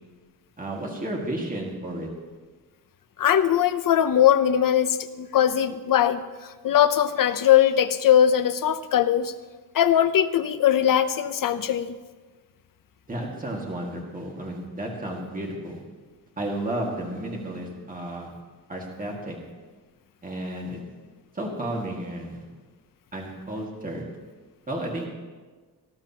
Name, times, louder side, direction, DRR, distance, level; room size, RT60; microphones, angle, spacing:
voice 1, 0.6-2.1 13.1-15.8 16.4-18.3 18.7-19.4 20.2-20.8 21.3-22.4 23.1-24.0 24.7-25.1, right 1 dB, 20° right, -1 dB, 1.8 m, -32 dB
voice 2, 3.2-9.3 9.7-11.9, left 10 dB, 60° left, 11 dB, 0.7 m, -20 dB
18.5 x 12.5 x 2.9 m, 1.4 s
wide cardioid pair, 165°, 38 cm